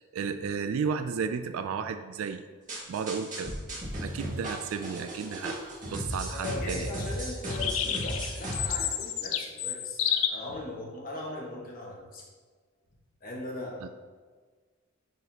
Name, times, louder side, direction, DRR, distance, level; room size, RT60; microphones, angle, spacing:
voice 1, 0.0-2.4 2.9-3.5 4.0-5.6 5.9-6.9 13.8-13.9, right 6 dB, 70° right, 9 dB, 0.3 m, -33 dB
sound 1, 2.7-8.7, equal, 40° right, 1.8 m, -35 dB
voice 2, 6.3-12.2 13.2-13.9, left 2 dB, 40° left, -2 dB, 1.3 m, -39 dB
sound 2, 7.5-10.3, left 10 dB, 70° left, 0.5 m, -30 dB
9.2 x 4.0 x 2.9 m, 1.5 s
head